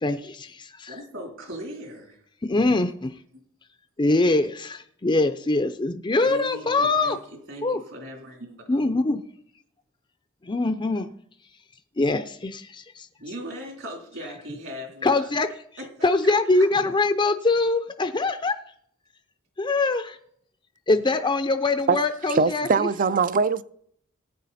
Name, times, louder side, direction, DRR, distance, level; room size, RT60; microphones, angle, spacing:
voice 1, 0.0-0.9 2.4-3.1 4.0-7.2 7.6-7.8 8.7-9.2 10.4-11.1 12.0-13.1 15.0-15.5 16.0-18.5 19.6-20.2 20.9-22.7, left 2 dB, 20° left, 0.5 m, -23 dB
voice 2, 0.9-2.2 6.2-8.9 13.2-15.3 15.8-15.9 16.2-16.7, equal, 65° right, 3.5 m, -39 dB
voice 3, 22.3-23.6, right 4 dB, 40° right, 0.5 m, -21 dB
17.0 x 9.5 x 4.2 m
head